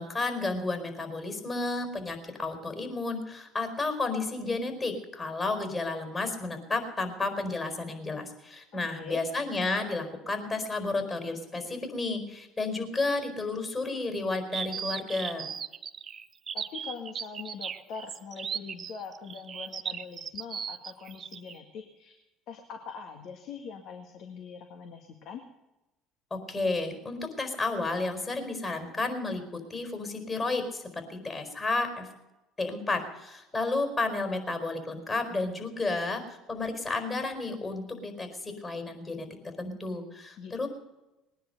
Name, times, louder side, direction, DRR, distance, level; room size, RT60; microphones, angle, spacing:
voice 1, 0.0-15.5 26.3-30.8 31.1-32.1 32.6-40.7, left 3 dB, 25° left, 6 dB, 4.5 m, -32 dB
voice 2, 8.7-9.3 16.5-22.1 22.5-25.4 40.4-40.7, left 6 dB, 60° left, 4 dB, 1.7 m, -43 dB
sound 1, 14.5-21.5, right 7 dB, 40° right, 0.8 m, -37 dB
20.0 x 10.0 x 6.6 m, 1.0 s
hypercardioid pair, 70°, 0 cm